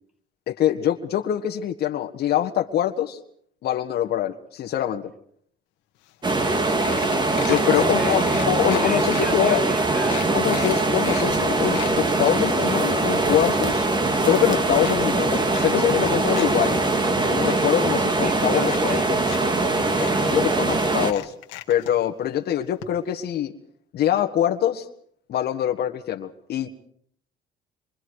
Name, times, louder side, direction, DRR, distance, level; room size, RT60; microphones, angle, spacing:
voice 1, 0.5-3.2 3.6-5.1 7.4-9.6 10.3-13.9 14.2-16.8 17.2-19.0 20.3-21.3 21.7-23.5 23.9-24.9 25.3-26.7, left 11 dB, 60° left, 4 dB, 1.6 m, -24 dB
sound 1, 6.1-6.2 6.4-6.5 6.8-7.7 8.2-9.3 9.7-9.8 10.1-11.3 11.6-12.0 12.5-14.0 14.2-15.0 15.5-16.5 16.8-17.3 18.1-18.2 18.6-19.4 19.7-19.8 20.0-20.1 21.0-21.9 22.8-22.9 23.2-23.3, left 16 dB, 90° left, 1.9 m, -37 dB
sound 2, 6.2-21.1, right 2 dB, 25° right, 2.2 m, -22 dB
voice 2, 7.3-8.2 8.6-10.3 18.2-19.1 19.6-20.7, equal, 5° right, 5 dB, 6.0 m, -36 dB
27.0 x 24.0 x 4.9 m, 0.64 s
cardioid pair, 110°, 19 cm